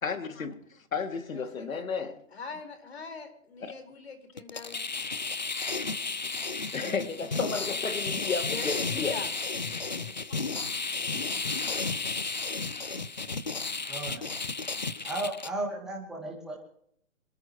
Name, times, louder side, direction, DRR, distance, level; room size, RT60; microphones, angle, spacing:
voice 1, 0.0-2.2 3.6-3.7 6.7-9.2, left 5 dB, 75° left, 2.7 m, -33 dB
voice 2, 1.3-4.9 5.5-5.6 5.9-6.0 8.4-9.3, left 5 dB, 50° left, 4.7 m, -44 dB
sound 1, 4.4-15.5, left 4 dB, 35° left, 0.5 m, -33 dB
voice 3, 11.1-11.4 12.5-12.7 13.9-14.2 15.0-16.6, right 2 dB, ahead, 2.5 m, -36 dB
28.0 x 13.5 x 3.1 m
hypercardioid pair, 175°, 40 cm